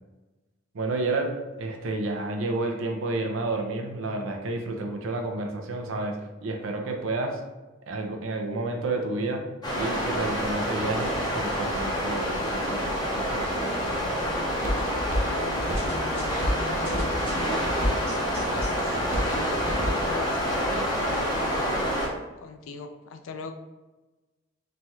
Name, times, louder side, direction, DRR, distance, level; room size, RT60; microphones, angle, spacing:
voice 1, 0.7-7.4 7.9-9.5 9.7-12.9 13.1-14.1, right 2 dB, 90° right, 3 dB, 0.5 m, -30 dB
sound 1, 9.6-22.1, equal, 20° left, 0.7 m, -28 dB
Walk footsteps, 13.3-21.2, equal, 40° right, 0.4 m, -33 dB
voice 2, 15.3-17.1 17.6-21.9 22.4-23.5, left 4 dB, 85° left, 7 dB, 0.4 m, -40 dB
sound 2, 15.8-18.7, equal, 10° right, 0.9 m, -40 dB
3.2 x 2.3 x 2.8 m, 1.1 s
head